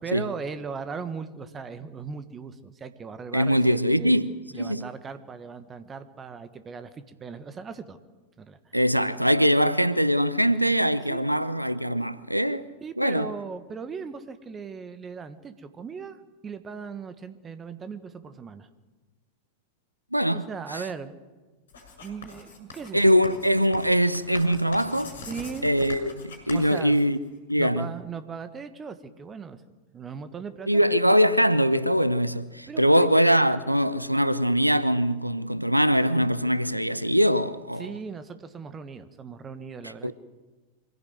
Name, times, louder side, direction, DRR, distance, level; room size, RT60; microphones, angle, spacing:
voice 1, 0.0-4.2 4.5-8.0 8.4-8.6 11.1-11.2 12.8-18.7 20.3-21.2 22.0-23.1 25.3-25.7 26.5-26.9 27.6-29.6 29.9-31.0 32.7-33.1 37.8-40.1, right 5 dB, 20° right, 1.5 m, -38 dB
voice 2, 3.3-4.9 8.7-13.3 20.1-20.4 20.7-20.8 22.9-25.2 25.6-27.2 27.5-27.9 30.7-37.9 39.8-40.1, equal, 90° right, 0.7 m, -22 dB
Writing, 21.7-27.5, left 4 dB, 60° left, 6.6 m, -43 dB
24.5 x 16.5 x 7.8 m
figure-of-eight pair, 90°, 0 cm